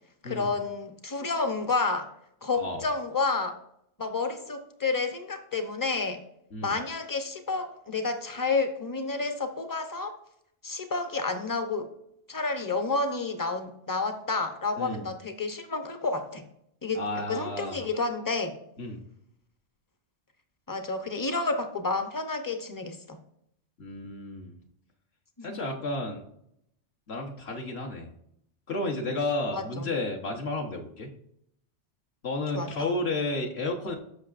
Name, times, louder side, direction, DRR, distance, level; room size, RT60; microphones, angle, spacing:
voice 1, 0.2-2.1 2.4-3.5 4.0-6.2 6.6-10.2 10.6-11.9 12.3-16.4 16.8-17.0 17.3-18.6 20.7-23.2 25.4-25.6 29.5-29.9 32.5-32.7, left 3 dB, 20° left, 7 dB, 0.7 m, -30 dB
voice 2, 16.9-17.8 18.8-19.0 23.8-24.5 25.4-26.2 27.1-28.1 28.7-31.1 32.2-34.0, left 2 dB, 65° left, 0 dB, 1.5 m, -32 dB
13.5 x 5.7 x 2.5 m, 0.73 s
omnidirectional pair, 1.2 m